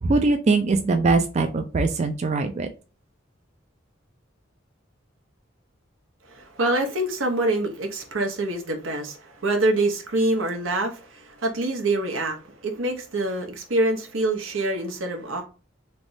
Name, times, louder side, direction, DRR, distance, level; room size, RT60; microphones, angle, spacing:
voice 1, 0.0-2.7, right 3 dB, 35° right, 0.4 m, -22 dB
voice 2, 6.3-15.4, right 2 dB, 85° right, 0.9 m, -25 dB
3.4 x 3.1 x 2.6 m
head